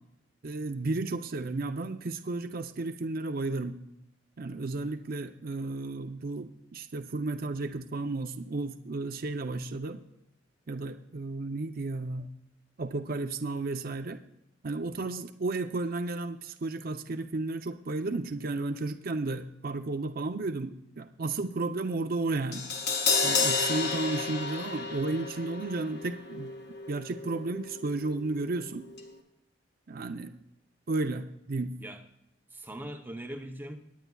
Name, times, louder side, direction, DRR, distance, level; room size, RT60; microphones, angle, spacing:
voice 1, 0.4-3.8 4.4-10.0 10.7-12.3 12.8-14.2 14.6-22.7 23.2-26.5 26.9-28.9 29.9-30.3 30.9-31.7, right 3 dB, 50° right, 7 dB, 0.6 m, -33 dB
Crash cymbal, 22.5-28.7 28.9-29.1, left 4 dB, 55° left, 1.6 m, -32 dB
voice 2, 32.5-33.8, right 1 dB, 10° right, 5 dB, 0.7 m, -42 dB
20.0 x 9.3 x 2.3 m, 0.82 s
head